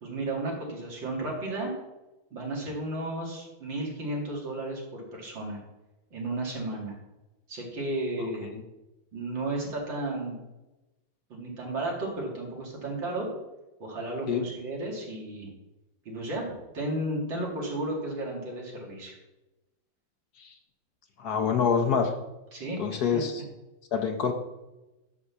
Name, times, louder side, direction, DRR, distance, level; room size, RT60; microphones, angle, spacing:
voice 1, 0.0-1.7 2.3-5.6 6.1-7.0 7.5-8.5 9.1-10.4 11.3-13.3 13.8-15.5 16.0-19.2 22.5-23.2, right 2 dB, 80° right, -2 dB, 3.3 m, -33 dB
voice 2, 21.2-22.1 22.8-23.4 23.9-24.3, left 6 dB, 60° left, 6 dB, 1.3 m, -26 dB
10.5 x 4.2 x 7.1 m, 1.0 s
omnidirectional pair, 2.0 m